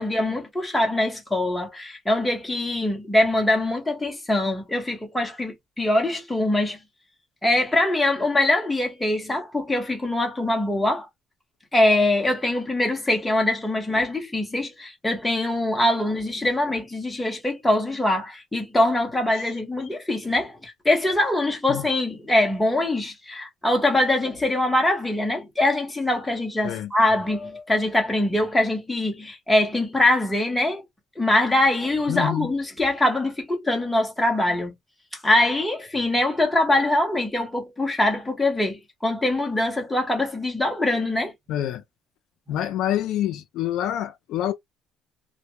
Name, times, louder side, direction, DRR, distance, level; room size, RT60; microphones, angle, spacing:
voice 1, 0.0-6.8 7.4-11.1 11.7-30.8 31.2-34.7 35.2-41.3, left 1 dB, 5° left, 0.7 m, -23 dB
voice 2, 32.1-32.5 41.5-41.8 42.5-44.5, left 12 dB, 65° left, 0.4 m, -26 dB
2.1 x 2.0 x 2.9 m
cardioid pair, 175°, 0 cm